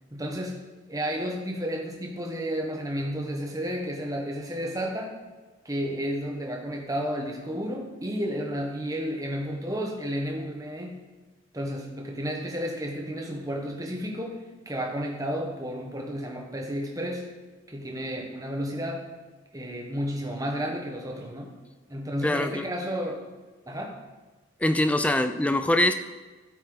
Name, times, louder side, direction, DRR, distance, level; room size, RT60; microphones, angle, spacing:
voice 1, 0.1-5.2 5.6-11.1 11.5-17.3 17.7-19.1 19.5-21.5 21.9-23.2 23.7-24.0, equal, 15° right, 1 dB, 1.3 m, -32 dB
voice 2, 22.2-22.7 24.6-25.9, left 1 dB, 5° left, 9 dB, 0.3 m, -23 dB
13.0 x 8.3 x 4.0 m, 1.2 s
head